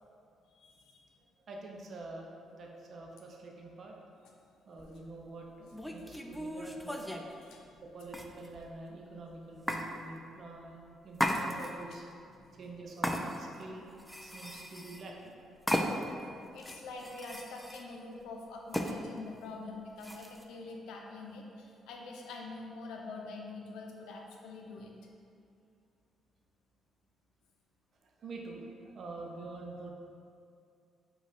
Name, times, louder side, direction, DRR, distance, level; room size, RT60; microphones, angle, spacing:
voice 1, 0.5-1.1 7.3-7.7 9.7-9.8 12.3-12.5 16.2-24.9, left 3 dB, 85° left, 0 dB, 0.6 m, -45 dB
voice 2, 1.5-4.0 4.7-7.4 7.8-12.1 12.6-13.9 14.2-15.3 16.2-16.7 28.2-29.9, right 2 dB, 55° right, 0 dB, 0.6 m, -46 dB
sound 1, 4.8-5.0 5.7-7.3 8.1-8.7 9.7-9.9 11.1-11.9 13.0-13.6 14.0-15.1 15.7-16.2 16.6-17.9 18.7-19.0 20.0-20.4, equal, 5° left, 0.3 m, -35 dB
5.1 x 2.4 x 4.1 m, 2.4 s
cardioid pair, 90°, 0 cm